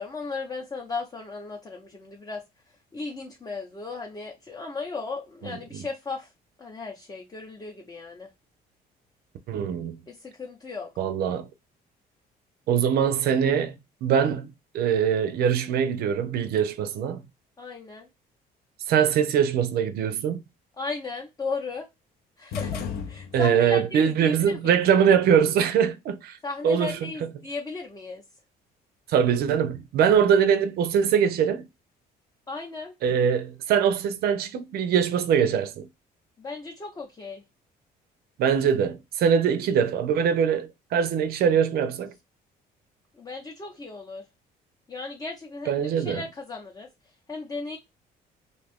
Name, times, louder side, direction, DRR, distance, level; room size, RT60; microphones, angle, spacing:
voice 1, 0.0-2.4 2.9-6.3 6.6-8.3 10.1-10.9 17.6-18.1 20.8-21.9 22.4-24.8 26.4-28.2 32.5-32.9 36.4-37.4 43.2-44.2 44.9-46.9 47.3-47.8, left 4 dB, 20° left, 0.7 m, -36 dB
voice 2, 5.4-5.8 9.5-10.0 11.0-11.5 12.7-14.5 14.7-17.2 18.9-20.4 23.3-26.4 26.6-27.3 29.1-31.7 33.0-35.9 38.4-42.1 45.7-46.2, right 8 dB, 65° right, 0.5 m, -23 dB
sound 1, 22.5-23.7, left 6 dB, 65° left, 0.6 m, -33 dB
2.6 x 2.4 x 3.4 m
cardioid pair, 110°, 17 cm